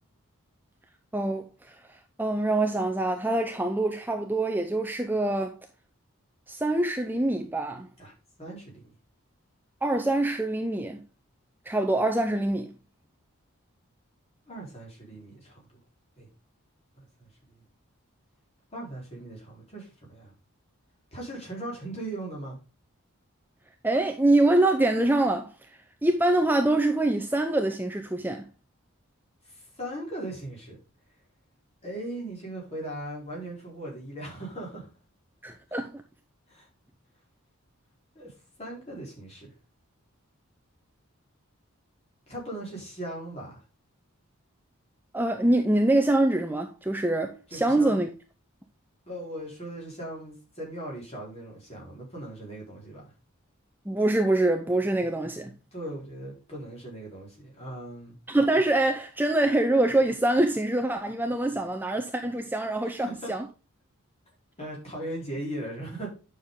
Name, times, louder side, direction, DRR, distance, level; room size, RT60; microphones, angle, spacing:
voice 1, 1.1-5.6 6.5-7.9 9.8-11.0 11.7-12.7 23.8-28.5 35.4-36.0 45.1-48.1 53.9-55.5 58.3-63.4, right 2 dB, 10° right, 0.6 m, -25 dB
voice 2, 8.0-8.9 14.5-15.7 16.2-16.3 17.0-17.6 18.7-20.3 21.1-22.6 29.4-30.8 31.8-34.9 36.5-36.7 38.1-38.3 38.6-39.5 42.3-43.6 47.5-48.0 49.1-53.0 55.7-58.2 63.0-63.3 64.6-66.1, right 1 dB, 30° left, 4.3 m, -38 dB
9.5 x 6.6 x 3.7 m
head